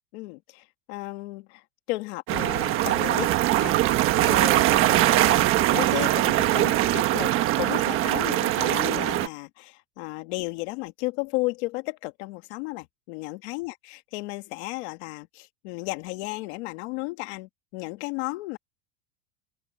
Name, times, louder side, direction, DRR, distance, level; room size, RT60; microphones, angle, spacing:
voice 1, 0.1-1.6 1.9-18.6, left 23 dB, 60° left, 1.7 m, -34 dB
sound 1, 2.3-9.3, right 15 dB, 35° right, 1.3 m, -22 dB
open air
supercardioid pair, 170°, 37 cm